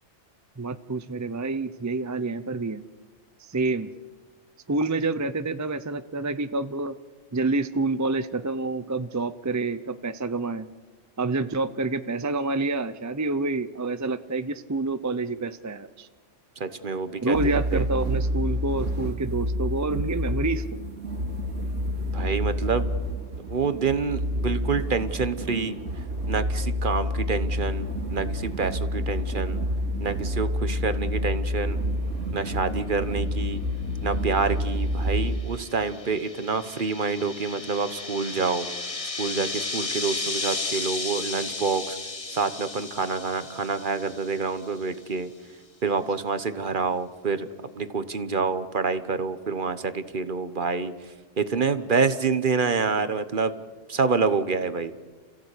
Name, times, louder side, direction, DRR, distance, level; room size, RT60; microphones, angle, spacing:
voice 1, 0.6-2.8 3.4-3.9 4.7-7.0 7.3-10.7 11.2-16.1 17.2-20.6, right 3 dB, 25° right, 12 dB, 0.4 m, -28 dB
voice 2, 16.6-17.9 22.1-22.9 23.4-25.8 26.3-29.6 30.0-31.8 32.3-33.6 34.0-38.7 39.2-42.0 42.3-45.3 45.8-47.5 47.7-50.9 51.4-53.5 53.9-54.9, right 4 dB, 45° right, 11 dB, 1.2 m, -27 dB
sound 1, 17.3-35.4, equal, 75° right, 2.8 m, -28 dB
sound 2, 34.9-44.7, left 3 dB, 25° left, 1.3 m, -34 dB
29.5 x 15.5 x 8.3 m, 1.4 s
omnidirectional pair, 1.3 m